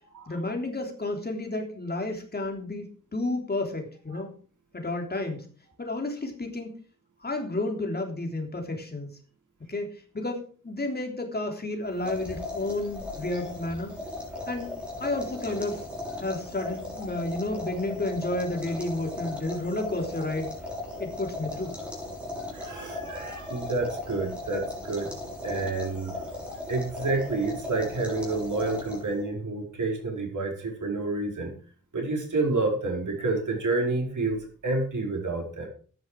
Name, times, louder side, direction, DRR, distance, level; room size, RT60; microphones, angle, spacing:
voice 1, 0.3-2.9 3.1-4.3 4.7-5.5 5.8-6.8 7.2-9.1 9.7-13.9 14.5-15.9 16.2-20.5 21.0-21.8, left 2 dB, 30° left, 2 dB, 3.4 m, -31 dB
sound 1, 11.9-29.3, left 2 dB, 5° right, 6.3 m, -37 dB
voice 2, 22.5-25.1 25.4-26.2 26.7-31.5 31.9-35.7, right 3 dB, 65° right, 2 dB, 4.8 m, -29 dB
13.0 x 10.0 x 4.8 m, 0.41 s
wide cardioid pair, 125°, 32 cm